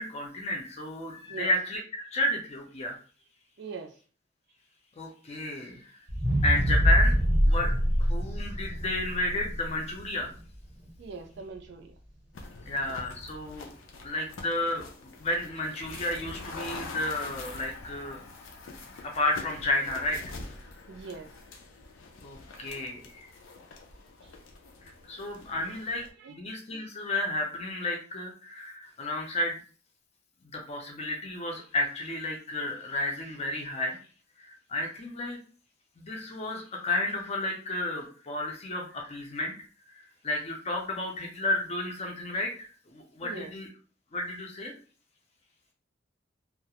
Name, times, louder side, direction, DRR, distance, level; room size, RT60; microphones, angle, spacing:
voice 1, 0.0-2.9 5.0-6.0 6.4-7.1 7.4-7.7 8.0-10.3 12.7-13.7 14.0-14.9 15.2-18.2 18.6-18.8 19.1-20.3 22.2-23.3 24.8-29.6 30.5-34.0 34.4-35.4 36.0-39.5 39.9-43.7 44.1-44.7, left 1 dB, 35° left, 0 dB, 0.4 m, -32 dB
voice 2, 3.6-4.0 11.0-11.9 20.9-21.3 24.2-24.3 25.5-25.7 26.2-26.4 43.2-43.5, right 4 dB, 60° right, 5 dB, 0.3 m, -42 dB
sound 1, 6.1-10.3 10.8-10.9, equal, 5° right, 0.8 m, -25 dB
sound 2, 12.3-26.1, left 3 dB, 90° left, 0.5 m, -45 dB
2.3 x 2.0 x 2.8 m, 0.40 s
head